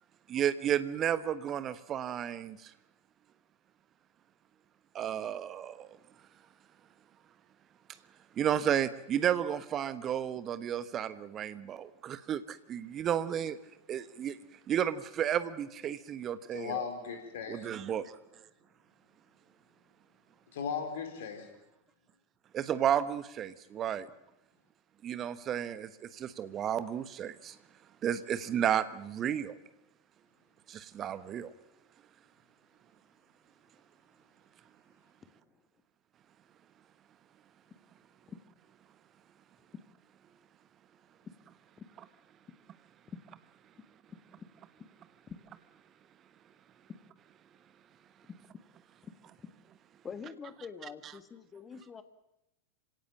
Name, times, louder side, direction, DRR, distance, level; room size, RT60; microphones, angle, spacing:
voice 1, 0.3-2.7 4.9-5.9 8.4-13.6 13.9-14.4 14.7-16.9 17.5-18.2 22.5-24.1 25.0-27.6 28.0-29.5 30.7-31.5, right 9 dB, 30° right, 14 dB, 1.2 m, -32 dB
voice 2, 16.5-17.7 20.5-21.5, left 7 dB, 55° left, 6 dB, 4.3 m, -37 dB
voice 3, 48.3-48.6 49.0-49.1 50.0-52.0, left 6 dB, 20° left, 11 dB, 1.6 m, -45 dB
26.5 x 17.0 x 7.5 m, 0.91 s
figure-of-eight pair, 90°, 0 cm